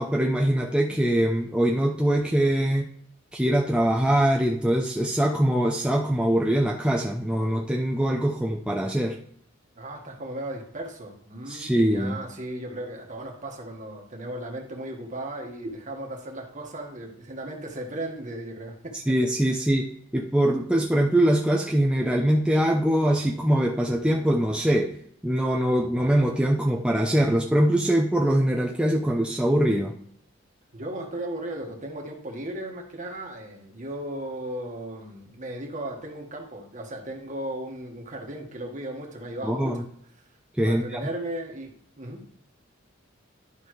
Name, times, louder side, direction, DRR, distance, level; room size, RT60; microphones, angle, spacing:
voice 1, 0.0-2.9 3.3-9.2 11.5-12.2 19.1-19.9 20.1-25.0 25.2-29.9 39.4-39.8 40.6-41.0, right 1 dB, 5° right, 0 dB, 0.5 m, -23 dB
voice 2, 9.8-19.1 19.4-19.5 30.7-39.8 40.6-42.2, right 1 dB, 40° right, 1 dB, 1.6 m, -36 dB
11.5 x 5.3 x 3.2 m, 0.66 s
head